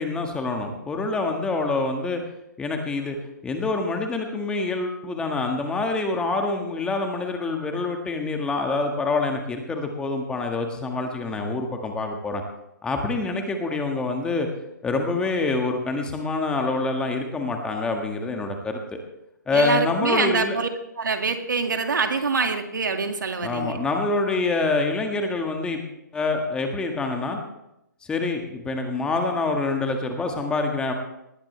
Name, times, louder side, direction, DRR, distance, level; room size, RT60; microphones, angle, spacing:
voice 1, 0.0-2.2 2.6-3.2 3.4-12.4 12.8-14.5 14.8-19.0 19.5-20.6 23.4-25.8 26.1-27.4 28.1-30.9, left 3 dB, 10° left, 3 dB, 1.6 m, -26 dB
voice 2, 19.5-20.7 21.0-23.8, right 4 dB, 75° right, 5 dB, 2.1 m, -25 dB
19.5 x 16.0 x 3.3 m, 0.85 s
figure-of-eight pair, 140°, 10 cm